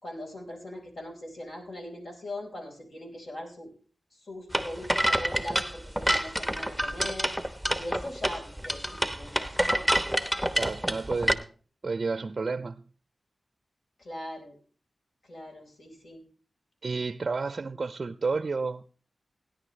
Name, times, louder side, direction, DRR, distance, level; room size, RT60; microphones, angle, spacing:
voice 1, 0.0-3.7 4.1-7.4 7.7-10.0 14.0-14.6 15.2-16.2, left 1 dB, 65° left, 4.4 m, -41 dB
sound 1, 4.5-11.3, right 1 dB, ahead, 0.9 m, -27 dB
voice 2, 10.5-11.5 11.8-12.8 16.8-18.9, right 4 dB, 55° right, 0.4 m, -31 dB
17.0 x 10.0 x 3.2 m
cardioid pair, 65°, 0 cm